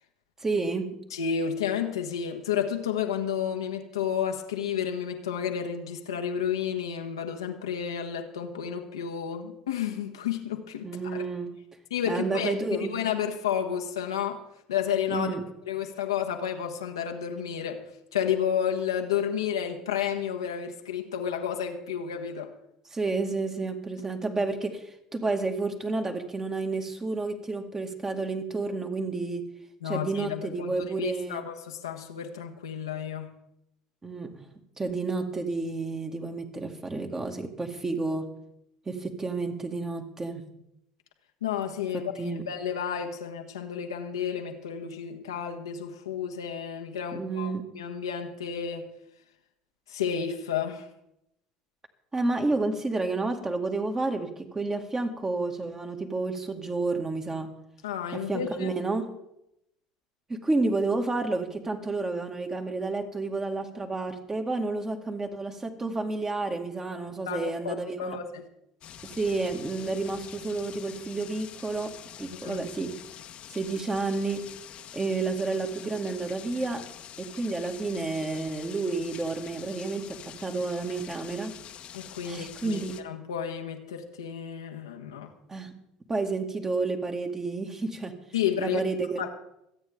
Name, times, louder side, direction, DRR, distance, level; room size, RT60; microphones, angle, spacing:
voice 1, 0.4-0.9 10.8-11.6 12.1-12.9 15.1-15.4 22.9-24.8 25.1-29.5 29.8-31.4 34.0-34.5 34.8-38.3 38.9-40.5 41.9-42.4 47.1-47.7 52.1-57.5 58.1-59.1 60.3-68.2 69.2-73.0 73.5-74.5 74.9-76.9 77.2-81.5 82.3-82.9 85.5-85.8 86.1-88.2 88.6-89.2, right 3 dB, 20° right, 4 dB, 2.1 m, -30 dB
voice 2, 1.1-11.2 11.9-14.4 14.7-15.3 15.7-17.8 18.1-22.5 29.8-33.3 41.4-48.9 49.9-50.9 57.8-58.7 67.3-68.5 72.3-72.6 81.9-85.3 88.3-88.8 89.2-89.3, left 8 dB, 85° left, 4 dB, 1.4 m, -31 dB
sound 1, 68.8-83.0, left 10 dB, 50° left, 1.2 m, -46 dB
26.5 x 8.9 x 3.7 m, 0.82 s
hypercardioid pair, 65°, 2 cm